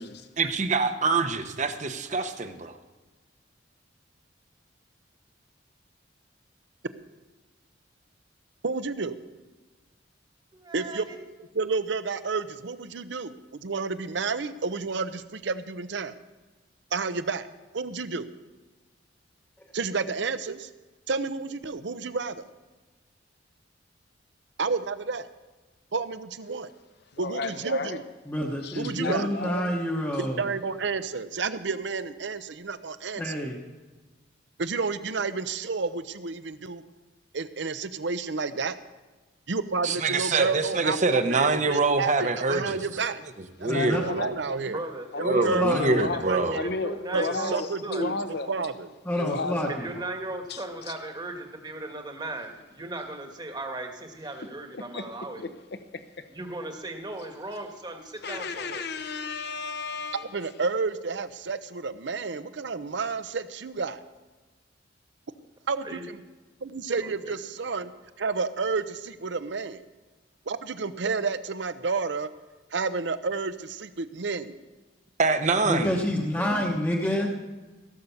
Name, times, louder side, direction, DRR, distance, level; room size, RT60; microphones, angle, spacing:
voice 1, 0.4-2.7 39.8-42.8 43.6-44.3 45.2-46.6 75.2-75.9, right 3 dB, 40° right, 8 dB, 0.9 m, -25 dB
voice 2, 8.6-9.2 10.7-11.0 11.5-16.1 16.9-17.5 17.7-18.3 19.7-20.7 21.1-22.4 24.6-25.3 25.9-26.7 27.2-28.0 28.7-29.3 30.2-33.4 34.6-36.8 37.3-38.8 39.5-43.2 43.6-44.8 45.2-46.6 47.1-47.2 47.5-48.2 48.5-48.9 60.1-64.0 65.7-66.2 66.6-67.9 68.2-69.8 70.5-72.3 72.7-74.5, right 4 dB, 65° right, 12 dB, 0.7 m, -30 dB
voice 3, 10.5-11.2 44.6-45.7 46.1-48.1 49.7-55.4 56.3-58.8 65.8-66.0 67.0-67.3 76.4-76.6, right 2 dB, 25° right, 4 dB, 1.4 m, -37 dB
voice 4, 27.1-28.0 28.6-29.8 30.1-30.2 43.6-44.3 45.1-46.2 46.5-48.5 49.1-49.7 50.5-50.9 54.7-55.0 55.4-55.5 58.2-60.2, left 3 dB, 60° left, 9 dB, 0.9 m, -33 dB
voice 5, 28.3-30.4 33.2-33.6 43.7-44.0 45.5-46.0 49.0-49.9 75.6-77.3, equal, 10° left, -1 dB, 1.0 m, -28 dB
16.5 x 6.7 x 7.1 m, 1.2 s
head